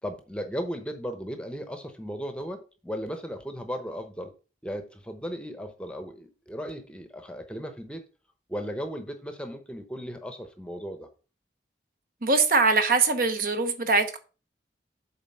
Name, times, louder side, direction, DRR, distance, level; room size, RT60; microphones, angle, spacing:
voice 1, 0.0-4.3 4.6-8.0 8.5-11.1, equal, 5° left, 0.8 m, -36 dB
voice 2, 12.2-14.2, right 4 dB, 50° right, 0.9 m, -22 dB
7.4 x 4.2 x 5.5 m
head